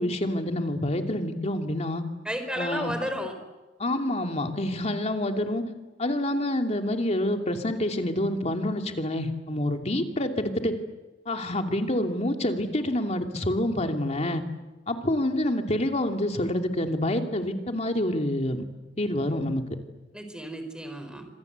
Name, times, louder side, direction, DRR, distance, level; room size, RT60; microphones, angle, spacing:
voice 1, 0.0-2.0 2.6-2.9 3.8-5.6 6.0-10.7 11.3-14.4 14.9-18.6 19.0-19.6, left 1 dB, 35° left, 4 dB, 2.8 m, -27 dB
voice 2, 2.2-3.3 20.1-21.3, equal, 5° right, 7 dB, 4.7 m, -32 dB
27.0 x 26.5 x 8.2 m, 1.2 s
head